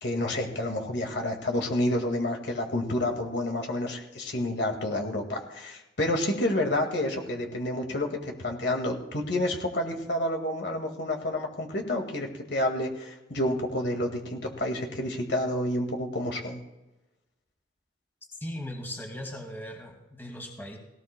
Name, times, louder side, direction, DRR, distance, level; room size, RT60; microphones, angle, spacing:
voice 1, 0.0-16.6, left 1 dB, 65° left, 2 dB, 2.0 m, -29 dB
voice 2, 18.4-20.8, equal, 10° left, 1 dB, 2.2 m, -38 dB
18.5 x 18.0 x 2.3 m, 1.0 s
head